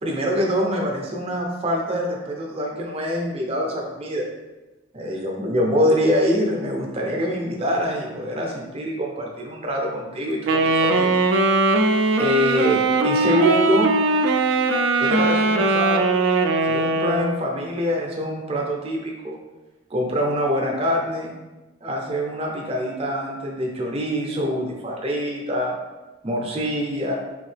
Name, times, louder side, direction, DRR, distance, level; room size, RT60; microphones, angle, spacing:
voice 1, 0.0-4.2 4.9-11.2 12.2-13.9 15.0-16.1 16.7-19.4 19.9-21.3 21.8-25.7 26.2-27.1, equal, 30° right, -1 dB, 0.6 m, -24 dB
Wind instrument woodwind instrument, 10.5-17.4, right 2 dB, 75° right, 0.3 m, -20 dB
3.7 x 2.7 x 3.3 m, 1.1 s
head